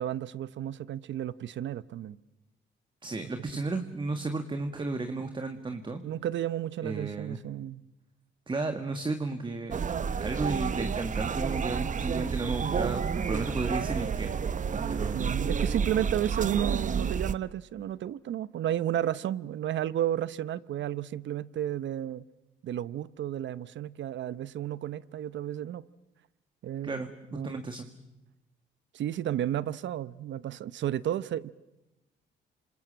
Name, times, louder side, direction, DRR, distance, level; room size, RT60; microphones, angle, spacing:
voice 1, 0.0-2.2 6.0-7.8 15.1-22.3 22.6-25.9 26.6-27.0 27.3-27.6 28.9-31.5, right 11 dB, 70° right, 0.9 m, -32 dB
voice 2, 3.0-6.0 6.8-7.4 8.5-9.8 10.2-14.3 14.7-15.4 26.8-27.1 27.4-27.9, right 3 dB, 25° right, 1.8 m, -33 dB
sound 1, 9.7-17.3, right 6 dB, 40° right, 0.9 m, -30 dB
28.5 x 26.5 x 7.6 m
cardioid pair, 90°, 20 cm